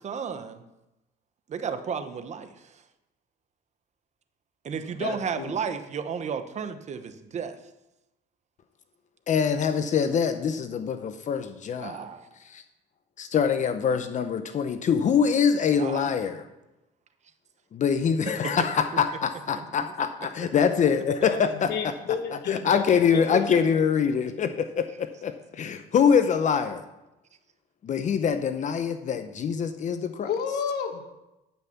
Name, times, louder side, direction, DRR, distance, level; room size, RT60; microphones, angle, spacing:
voice 1, 0.0-0.6 1.5-2.5 4.6-7.6 11.8-12.3 15.8-16.1 19.5-19.9, right 6 dB, 45° right, 9 dB, 1.0 m, -33 dB
voice 2, 4.9-5.6 21.0-23.7 30.2-31.0, left 6 dB, 70° left, 5 dB, 1.7 m, -32 dB
voice 3, 9.3-12.0 12.4-12.6 13.2-16.4 17.7-21.9 22.5-26.8 27.8-30.3, left 7 dB, 45° left, 9 dB, 0.8 m, -24 dB
11.5 x 5.8 x 7.1 m, 0.95 s
cardioid pair, 110°, 17 cm